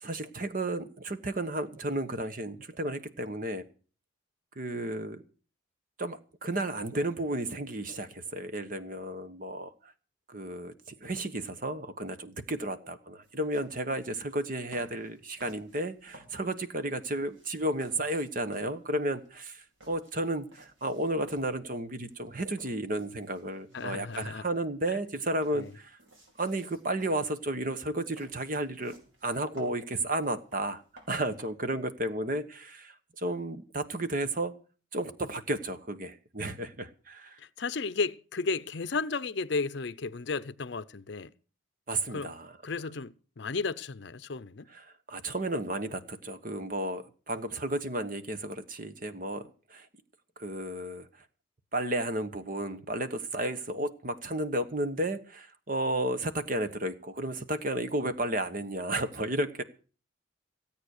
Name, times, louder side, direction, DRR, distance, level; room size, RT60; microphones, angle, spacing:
voice 1, 0.0-3.6 4.5-5.2 6.0-9.9 10.3-26.0 26.4-28.9 29.2-30.8 31.1-34.5 34.9-37.4 41.9-42.6 44.7-49.9 50.4-51.1 51.7-59.6, right 1 dB, 45° right, 1.2 m, -33 dB
sound 1, 13.2-31.4, right 1 dB, 85° right, 5.0 m, -58 dB
voice 2, 23.7-24.4 25.5-25.7 37.4-41.3 42.1-42.3 42.6-44.7, left 4 dB, 60° left, 0.6 m, -33 dB
16.5 x 8.8 x 6.5 m
head